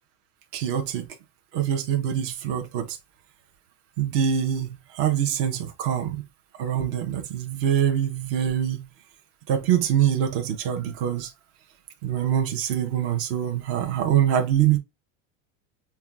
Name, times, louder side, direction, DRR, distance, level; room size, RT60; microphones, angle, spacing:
voice 1, 0.5-1.1 1.5-3.0 4.0-6.2 6.6-8.8 9.5-11.3 12.0-14.8, right 10 dB, 35° right, 0.8 m, -24 dB
5.4 x 2.3 x 2.3 m
supercardioid pair, 160°, 38 cm